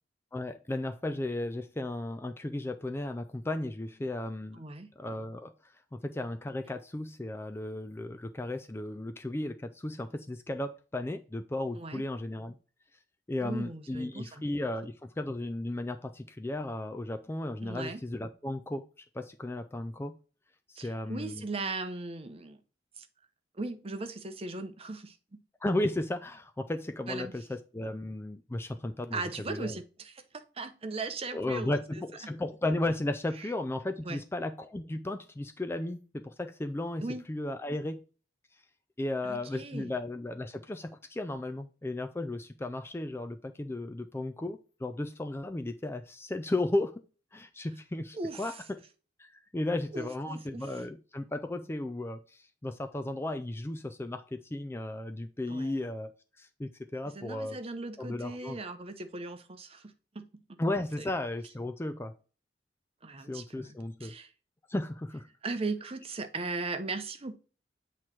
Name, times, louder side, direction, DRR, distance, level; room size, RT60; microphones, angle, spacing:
voice 1, 0.3-4.6 5.0-5.5 5.9-12.6 13.3-18.8 19.1-20.2 20.7-21.5 25.6-29.8 31.3-38.0 39.0-47.0 47.3-48.8 49.2-56.1 56.4-57.6 58.0-58.6 60.6-62.1 63.3-64.1 64.7-65.3, left 1 dB, 15° left, 0.4 m, -35 dB
voice 2, 4.5-4.9 11.7-12.0 13.4-14.5 17.6-18.0 20.8-22.6 23.0-23.1 23.5-25.2 27.1-27.3 29.1-31.8 33.4-33.5 34.0-34.2 37.0-37.2 39.2-39.9 48.1-48.6 49.9-50.8 55.5-55.8 57.1-60.3 61.0-61.1 63.0-64.3 65.4-67.3, right 3 dB, 35° right, 0.7 m, -38 dB
7.9 x 3.1 x 4.2 m
head